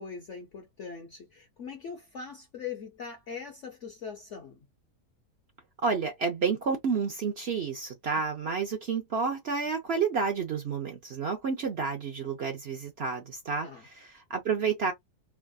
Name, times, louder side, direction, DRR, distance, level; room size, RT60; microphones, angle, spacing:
voice 1, 0.0-4.7 13.6-13.8, left 6 dB, 55° left, 1.0 m, -41 dB
voice 2, 5.8-14.9, right 5 dB, 55° right, 0.7 m, -30 dB
3.5 x 2.4 x 2.3 m
omnidirectional pair, 1.7 m